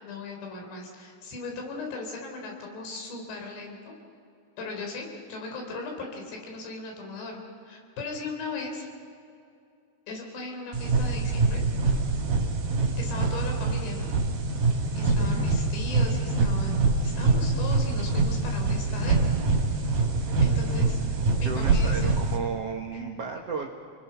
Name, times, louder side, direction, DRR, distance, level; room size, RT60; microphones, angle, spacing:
voice 1, 0.0-3.9 4.6-8.9 10.1-11.6 13.0-14.1 14.5-14.6 14.9-19.3 20.4-21.0 21.4-22.2 22.9-23.2, left 3 dB, 90° left, 1 dB, 5.9 m, -38 dB
sound 1, 10.7-22.4, right 3 dB, 55° right, 3.9 m, -25 dB
voice 2, 15.0-15.5 21.4-23.7, right 5 dB, 80° right, 2 dB, 1.3 m, -34 dB
30.0 x 20.5 x 5.7 m, 2.5 s
omnidirectional pair, 4.8 m